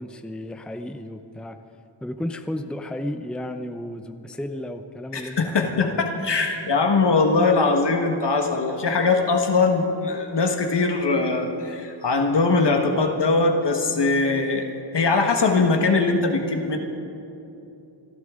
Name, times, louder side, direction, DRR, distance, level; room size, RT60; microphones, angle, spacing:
voice 1, 0.0-1.6 2.0-6.0, left 1 dB, ahead, 7 dB, 0.6 m, -33 dB
voice 2, 5.1-16.8, left 3 dB, 60° left, 4 dB, 1.5 m, -21 dB
28.0 x 11.5 x 3.8 m, 2.9 s
wide cardioid pair, 75°, 46 cm